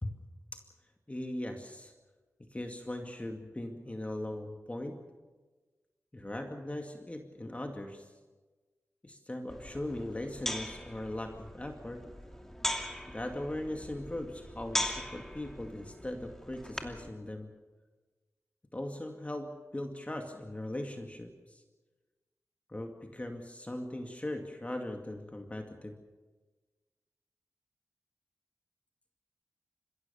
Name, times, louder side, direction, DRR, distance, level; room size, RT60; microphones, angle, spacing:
voice 1, 1.1-1.9 2.5-5.0 6.1-8.1 9.0-12.1 13.1-17.5 18.7-21.6 22.7-26.0, left 1 dB, 25° left, 4 dB, 2.2 m, -39 dB
sound 1, 9.5-17.1, left 1 dB, 5° left, 2.6 m, -40 dB
29.0 x 16.0 x 7.2 m, 1.3 s
cardioid pair, 60°, 6 cm